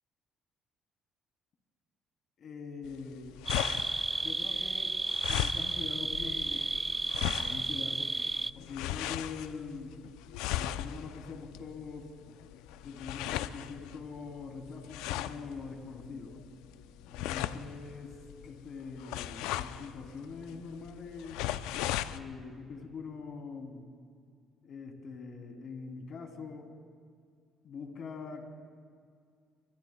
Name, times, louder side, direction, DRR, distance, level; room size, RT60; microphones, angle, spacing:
voice 1, 2.4-3.4 4.2-5.0 5.3-6.7 7.3-8.1 8.5-10.0 10.5-12.1 12.8-16.4 17.1-18.2 18.4-21.4 22.1-23.8 24.6-26.7 27.6-28.5, left 5 dB, 60° left, 3 dB, 2.9 m, -43 dB
sound 1, 2.8-22.2, left 13 dB, 85° left, 0.4 m, -38 dB
sound 2, 3.5-8.5, right 3 dB, 20° right, 0.3 m, -33 dB
23.5 x 22.0 x 2.2 m, 2.1 s
supercardioid pair, 70°, 0 cm